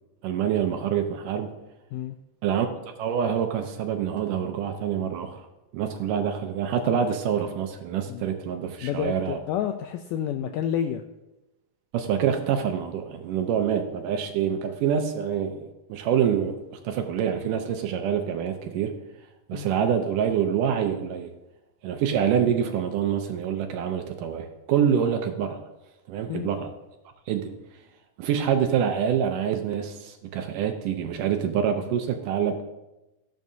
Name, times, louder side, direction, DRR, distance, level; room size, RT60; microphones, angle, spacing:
voice 1, 0.2-1.5 2.4-2.7 3.0-5.4 5.7-9.4 11.9-18.9 19.5-21.3 21.8-25.6 26.1-26.7 27.3-27.5 28.2-32.6, right 8 dB, 75° right, 6 dB, 2.2 m, -26 dB
voice 2, 8.8-11.0 19.5-19.7 26.3-26.5, left 9 dB, 80° left, 6 dB, 2.0 m, -29 dB
15.0 x 11.0 x 2.7 m, 1.0 s
omnidirectional pair, 4.1 m